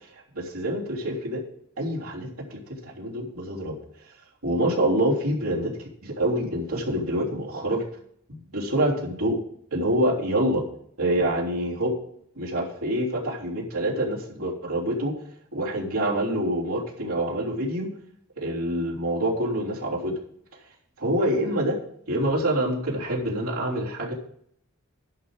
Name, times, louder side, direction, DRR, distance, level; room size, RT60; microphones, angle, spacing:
voice 1, 0.4-1.4 1.8-3.8 4.4-5.7 6.0-7.8 8.3-9.4 9.7-10.6 11.0-11.9 12.4-15.1 15.5-17.9 18.4-20.1 21.0-21.8 22.1-24.1, right 1 dB, 70° right, -3 dB, 3.3 m, -26 dB
11.0 x 5.6 x 6.4 m, 0.65 s
head